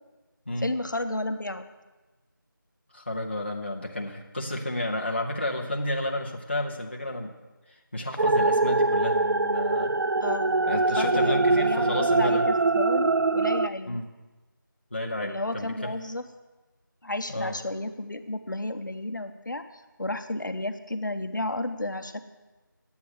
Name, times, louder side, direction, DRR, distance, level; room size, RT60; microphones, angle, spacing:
voice 1, 0.6-1.6 10.2-10.5 11.0-14.0 15.2-16.2 17.0-22.2, left 1 dB, 60° left, 8 dB, 1.0 m, -32 dB
voice 2, 2.9-7.3 7.7-10.0 10.7-12.5 13.9-14.1 14.9-15.9 17.3-17.5, left 1 dB, 30° left, 0 dB, 0.9 m, -31 dB
sound 1, 8.2-13.7, right 3 dB, 65° right, 0.4 m, -23 dB
9.9 x 8.4 x 6.6 m, 1.2 s
figure-of-eight pair, 180°, 11 cm